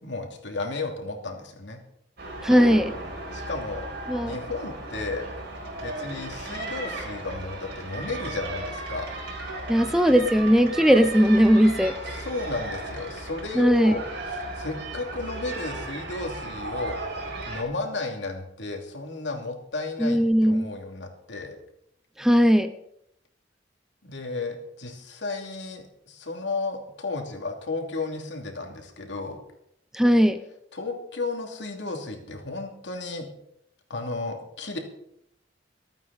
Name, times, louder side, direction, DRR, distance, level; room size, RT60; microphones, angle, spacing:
voice 1, 0.0-1.8 3.3-3.9 4.2-5.3 5.8-9.1 12.2-14.0 14.5-21.6 24.0-29.4 30.7-33.3 33.9-34.8, left 3 dB, 70° left, 2 dB, 2.7 m, -33 dB
sound 1, 2.2-17.6, right 2 dB, 60° right, 5.0 m, -35 dB
voice 2, 2.4-2.9 4.1-4.4 9.7-11.9 13.5-14.0 20.0-20.7 22.2-22.7 29.9-30.4, equal, 5° right, 8 dB, 0.7 m, -19 dB
25.5 x 9.0 x 4.1 m, 0.77 s
head